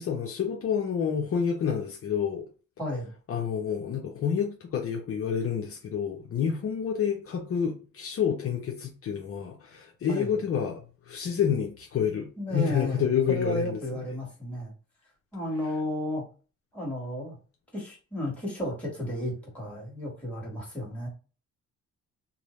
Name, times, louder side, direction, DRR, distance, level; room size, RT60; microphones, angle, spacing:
voice 1, 0.0-2.4 3.3-13.8, left 7 dB, 50° left, 0.6 m, -29 dB
voice 2, 2.8-3.1 10.1-10.3 12.4-14.7 15.3-16.2 16.7-17.4 17.7-21.1, equal, 5° left, 1.5 m, -33 dB
2.6 x 2.0 x 3.0 m
cardioid pair, 90°, 30 cm